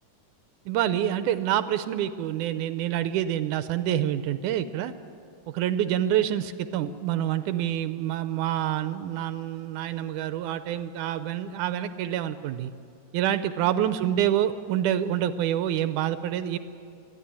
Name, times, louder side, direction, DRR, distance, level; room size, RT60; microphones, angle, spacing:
voice 1, 0.7-4.9 5.5-12.7 13.1-16.6, right 11 dB, 80° right, 12 dB, 2.1 m, -27 dB
21.0 x 13.5 x 10.0 m, 2.5 s
omnidirectional pair, 3.6 m